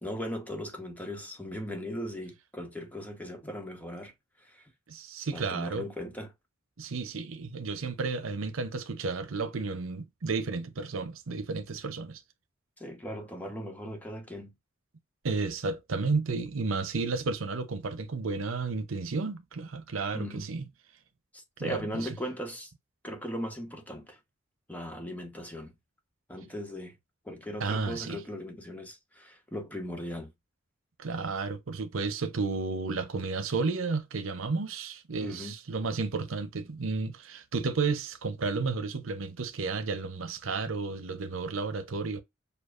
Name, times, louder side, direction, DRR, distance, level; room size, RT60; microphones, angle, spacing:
voice 1, 0.0-4.1 4.4-4.7 5.3-6.3 12.8-14.5 20.1-20.5 21.3-22.7 23.0-24.2 24.7-25.7 26.3-27.0 27.2-30.3 35.2-35.5, equal, 10° left, 1.2 m, -38 dB
voice 2, 4.9-5.9 6.8-12.2 15.2-20.6 21.6-22.1 27.6-28.2 31.0-42.2, right 4 dB, 90° right, 0.7 m, -32 dB
6.8 x 2.4 x 2.5 m
head